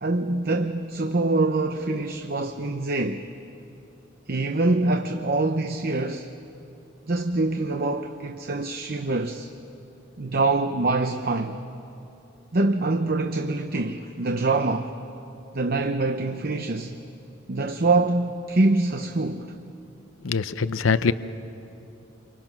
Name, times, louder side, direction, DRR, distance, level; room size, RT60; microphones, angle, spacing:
voice 1, 0.0-3.3 4.3-6.3 7.1-9.5 10.2-11.6 12.5-15.0 15.5-16.9 17.5-19.6, right 2 dB, 50° right, 0.8 m, -25 dB
voice 2, 20.2-21.1, left 5 dB, 80° left, 0.6 m, -23 dB
29.5 x 24.5 x 6.0 m
head